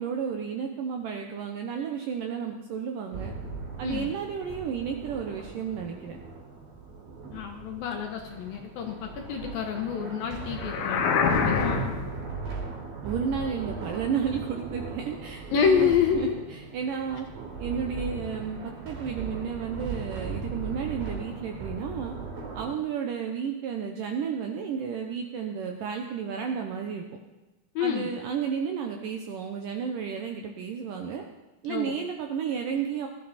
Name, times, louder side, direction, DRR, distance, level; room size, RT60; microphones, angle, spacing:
voice 1, 0.0-3.3 3.8-6.2 13.0-17.3 17.6-22.2 22.5-27.0 27.8-31.2 31.6-33.1, right 7 dB, 75° right, 3 dB, 2.0 m, -32 dB
sound 1, 3.1-22.7, right 4 dB, 55° right, 4.9 m, -38 dB
voice 2, 7.3-11.9 15.5-16.4 27.8-28.1 31.7-31.9, left 7 dB, 70° left, 3 dB, 2.5 m, -28 dB
sound 2, 10.6-12.2, left 5 dB, 90° left, 3.6 m, -25 dB
19.0 x 12.5 x 4.2 m, 1.1 s
omnidirectional pair, 5.0 m